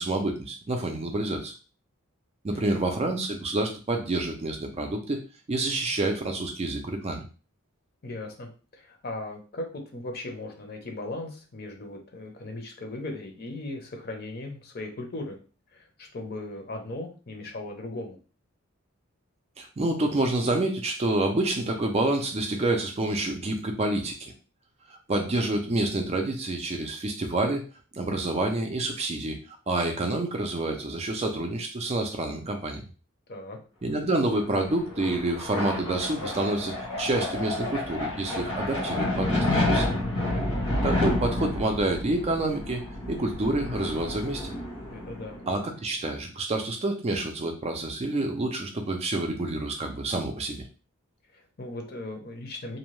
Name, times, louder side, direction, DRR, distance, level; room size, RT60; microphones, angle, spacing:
voice 1, 0.0-1.5 2.4-5.2 5.5-7.2 19.6-24.3 24.9-27.6 27.9-29.4 29.7-32.8 33.8-39.9 40.8-42.8 43.1-44.5 45.5-50.6, right 2 dB, 30° right, 3 dB, 0.4 m, -28 dB
voice 2, 8.0-9.6 9.9-15.4 15.7-18.2 33.3-33.6 44.9-45.4 51.3-52.8, left 2 dB, 45° left, 3 dB, 0.7 m, -38 dB
sound 1, 34.4-45.6, left 1 dB, 80° left, 1.1 m, -30 dB
2.7 x 2.1 x 3.0 m, 0.34 s
head